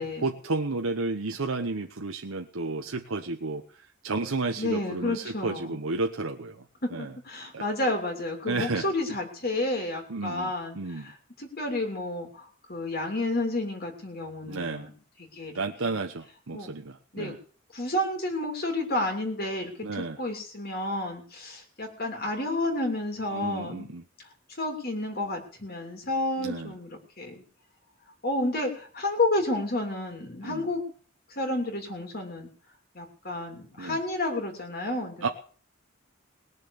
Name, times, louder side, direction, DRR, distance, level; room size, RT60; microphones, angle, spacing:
voice 1, 0.0-6.6 6.9-7.1 7.5-7.7 8.5-8.9 10.1-11.1 14.5-14.9 15.5-17.4 19.8-20.2 23.3-24.0 26.4-26.8 30.4-30.7 33.8-34.0 35.2-35.3, right 3 dB, 90° right, 4 dB, 1.0 m, -32 dB
voice 2, 4.6-5.7 6.8-14.9 15.2-16.0 16.5-16.8 17.1-17.4 17.7-23.9 24.2-24.3 24.6-27.4 28.2-30.8 31.3-32.5 32.9-35.3, left 2 dB, 50° left, 3 dB, 3.0 m, -31 dB
19.5 x 6.9 x 7.0 m, 0.43 s
head